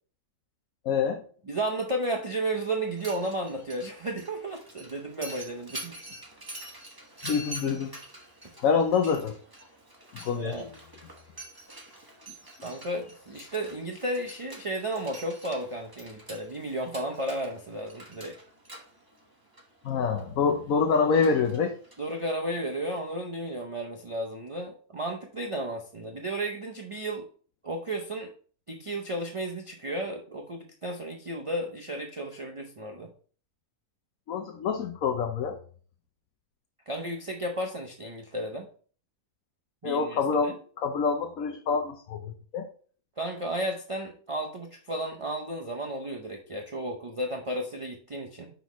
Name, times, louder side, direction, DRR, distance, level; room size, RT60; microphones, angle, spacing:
voice 1, 0.8-1.2 7.2-7.9 8.6-9.4 10.2-10.6 19.8-21.7 34.3-35.6 39.8-42.7, left 5 dB, 70° left, 4 dB, 1.1 m, -26 dB
voice 2, 1.5-6.0 10.3-10.7 12.6-18.4 22.0-27.3 27.6-28.3 28.7-33.1 36.9-38.7 39.8-40.5 43.2-48.5, right 1 dB, 40° right, 1 dB, 0.4 m, -33 dB
Mechanisms, 2.8-22.4, right 1 dB, 15° right, 1.2 m, -46 dB
6.0 x 5.6 x 3.0 m, 0.43 s
omnidirectional pair, 1.6 m